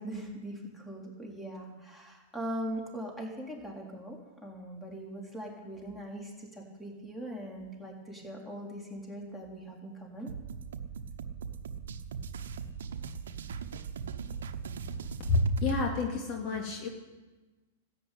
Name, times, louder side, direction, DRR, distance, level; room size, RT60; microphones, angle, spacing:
voice 1, 0.0-10.3, right 1 dB, 5° left, -1 dB, 4.1 m, -41 dB
sound 1, 10.3-15.9, right 6 dB, 80° right, 1.0 m, -39 dB
voice 2, 15.3-16.9, left 2 dB, 45° left, 1 dB, 2.6 m, -28 dB
14.0 x 9.0 x 9.4 m, 1.2 s
hypercardioid pair, 125°, 0 cm